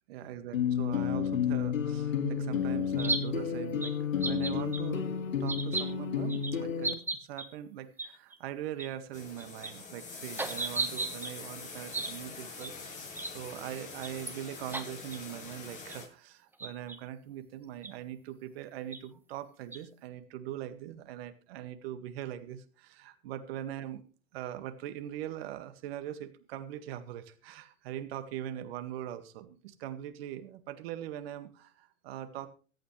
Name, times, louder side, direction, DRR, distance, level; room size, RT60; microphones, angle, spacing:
voice 1, 0.1-3.9 4.2-5.1 5.4-7.0 7.3-12.7 13.3-24.0 24.3-32.5, right 11 dB, 50° right, 9 dB, 1.9 m, -41 dB
sound 1, 0.5-6.9, left 7 dB, 70° left, 2.2 m, -31 dB
sound 2, 3.0-3.2 3.8-3.9 4.2-4.8 5.5-5.8 6.3-6.5 6.8-7.5 8.0-8.1 8.3-8.4 8.8-8.9 9.4-9.7 10.4-11.3 11.9-12.1 12.6-12.7 13.2-13.3 14.0-14.3 14.7-14.8 15.1-15.2 15.9-16.0 16.6-17.0 17.8-17.9 18.9-19.0 19.7-19.8, right 3 dB, 5° right, 1.3 m, -34 dB
sound 3, 9.1-16.1, left 4 dB, 20° left, 7.0 m, -44 dB
24.0 x 8.7 x 3.3 m, 0.37 s
hypercardioid pair, 125°, 40 cm